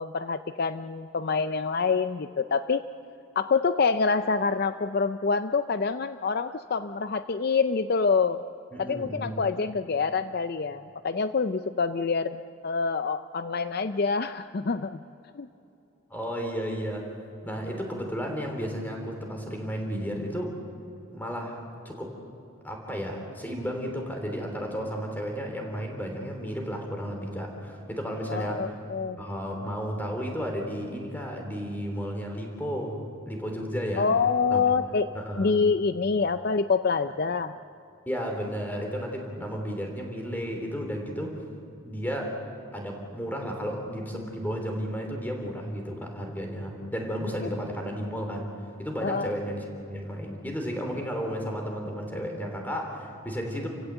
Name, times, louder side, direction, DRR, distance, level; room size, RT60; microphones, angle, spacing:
voice 1, 0.0-2.8 3.4-8.4 8.8-15.0 15.3-15.5 28.3-29.2 34.0-35.1 35.4-37.6 49.0-49.3, left 5 dB, 50° left, 11 dB, 0.5 m, -26 dB
voice 2, 8.7-9.4 16.1-17.1 17.4-20.5 21.1-22.1 22.6-28.8 29.2-34.1 34.5-34.6 35.1-35.6 38.1-41.4 41.8-42.4 42.7-48.5 48.8-53.7, equal, 10° left, 2 dB, 3.4 m, -33 dB
29.5 x 16.0 x 8.0 m, 2.9 s
head